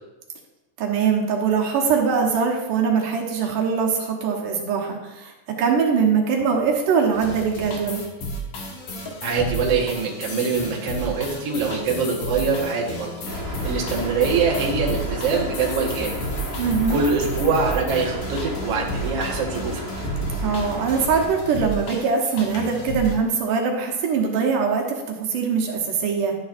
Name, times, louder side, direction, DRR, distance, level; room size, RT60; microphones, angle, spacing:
voice 1, 0.8-5.3 5.6-8.0 16.6-17.0 20.4-26.3, right 6 dB, 80° right, 0 dB, 2.8 m, -22 dB
sound 1, 7.1-23.2, right 1 dB, 65° left, 2.8 m, -32 dB
voice 2, 9.2-13.1 13.6-16.2 16.9-19.8, right 5 dB, 55° right, -2 dB, 2.3 m, -24 dB
sound 2, 13.2-21.3, equal, 40° left, 4.4 m, -32 dB
12.0 x 10.0 x 2.6 m, 1.1 s
omnidirectional pair, 3.7 m